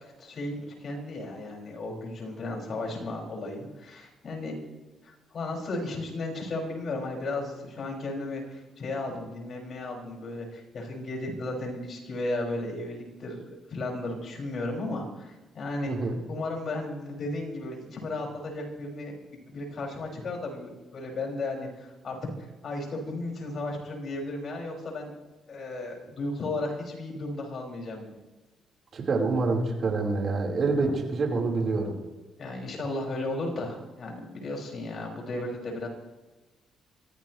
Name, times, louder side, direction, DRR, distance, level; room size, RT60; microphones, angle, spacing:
voice 1, 0.0-4.6 5.0-19.1 19.5-22.2 22.6-25.2 25.5-28.1 32.4-35.9, left 2 dB, 55° left, 0 dB, 6.7 m, -34 dB
voice 2, 15.9-16.2 28.9-32.0, right 3 dB, 50° right, 0 dB, 4.8 m, -26 dB
24.0 x 16.0 x 3.4 m, 1.1 s
cardioid pair, 90°, 0 cm